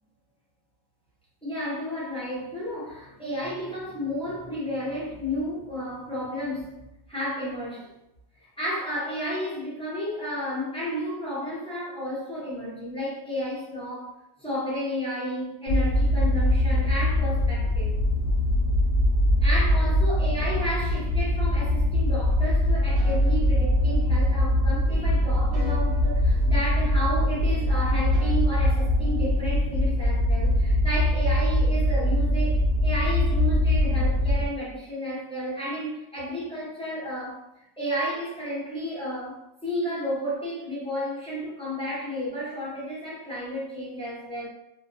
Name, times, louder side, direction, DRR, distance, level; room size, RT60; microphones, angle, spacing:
voice 1, 1.4-6.8 7.1-7.9 8.4-18.0 19.4-37.4 37.8-44.5, equal, 5° left, -9 dB, 0.6 m, -32 dB
sound 1, 15.7-34.5, left 1 dB, 75° left, 0.9 m, -22 dB
sound 2, 19.7-21.7 22.3-24.6 24.9-27.2 27.5-29.5, right 2 dB, 75° right, 1.0 m, -46 dB
2.6 x 2.2 x 2.5 m, 0.86 s
omnidirectional pair, 1.4 m